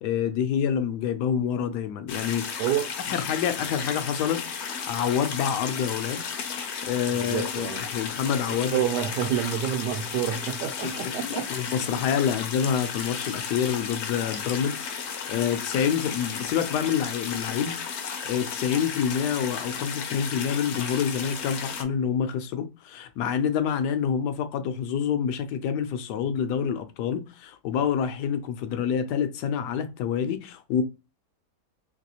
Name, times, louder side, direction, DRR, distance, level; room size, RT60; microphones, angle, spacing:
voice 1, 0.0-2.6 3.1-6.3 6.8-8.8 10.8-10.9 11.2-14.9 15.3-17.8 18.3-30.8, left 8 dB, 85° left, 1.2 m, -27 dB
sound 1, 2.1-21.8, left 6 dB, 65° left, 0.7 m, -34 dB
voice 2, 7.2-7.8 8.4-11.8, right 10 dB, 80° right, 1.2 m, -29 dB
3.3 x 2.9 x 2.8 m
omnidirectional pair, 1.7 m